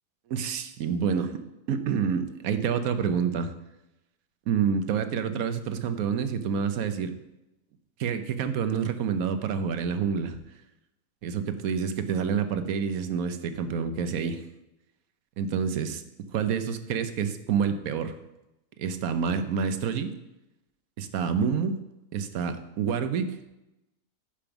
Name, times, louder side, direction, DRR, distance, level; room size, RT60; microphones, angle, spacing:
voice 1, 0.3-3.5 4.5-7.1 8.0-10.4 11.2-14.4 15.4-16.0 16.3-18.1 18.8-20.1 21.0-21.8 22.1-23.4, right 6 dB, 65° right, 10 dB, 1.1 m, -28 dB
10.0 x 5.3 x 5.9 m, 0.93 s
omnidirectional pair, 1.8 m